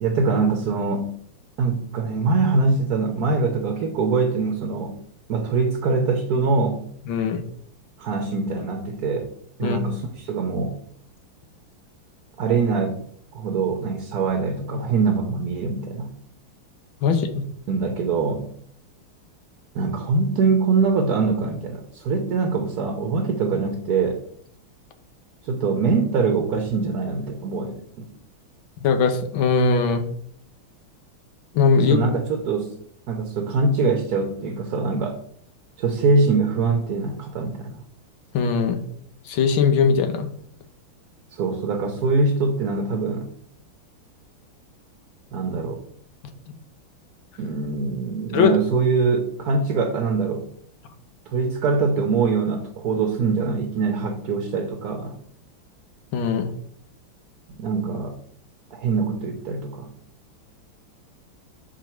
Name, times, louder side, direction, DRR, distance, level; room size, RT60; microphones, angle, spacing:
voice 1, 0.0-1.1 1.6-5.0 5.3-6.8 8.0-9.3 9.6-10.8 12.4-13.0 13.3-16.1 17.7-18.5 19.7-24.2 25.4-28.1 31.9-32.7 33.1-35.2 35.8-37.8 41.3-43.3 45.3-45.8 47.4-50.5 51.3-55.1 57.6-58.1 58.7-59.9, right 4 dB, 60° right, 4 dB, 1.2 m, -23 dB
voice 2, 7.1-7.4 9.6-9.8 17.0-17.5 28.8-30.0 31.5-32.0 38.3-38.8 39.3-40.3 48.3-48.5 56.1-56.5, left 5 dB, 75° left, 7 dB, 1.6 m, -20 dB
6.6 x 5.1 x 4.4 m, 0.62 s
omnidirectional pair, 2.3 m